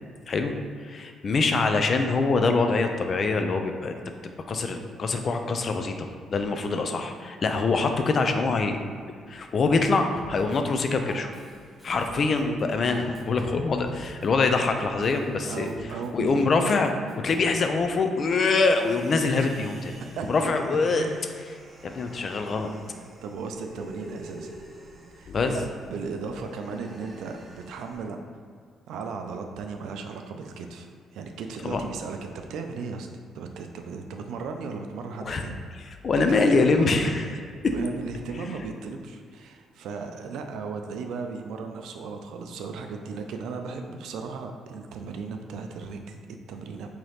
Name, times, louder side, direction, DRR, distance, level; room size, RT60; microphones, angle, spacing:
voice 1, 0.8-4.0 4.5-8.8 9.3-11.3 11.8-15.7 16.1-19.8 20.3-21.1 21.8-22.7 25.3-25.5 31.6-31.8 35.2-35.4 36.0-37.3 37.6-37.7, left 3 dB, 50° left, 5 dB, 0.4 m, -24 dB
Drum kit, 10.2-17.4, equal, ahead, 0.7 m, -44 dB
voice 2, 15.4-16.5 19.3-19.5 20.2-20.3 20.9-21.2 22.2-22.4 23.1-24.5 25.2-28.2 28.9-33.1 33.3-35.6 36.2-36.9 37.2-37.4 37.7-46.9, right 4 dB, 85° right, 4 dB, 0.4 m, -36 dB
Human voice, 18.6-28.0, right 1 dB, 40° right, 0.9 m, -46 dB
4.0 x 2.9 x 3.2 m, 2.1 s
cardioid pair, 90°, 0 cm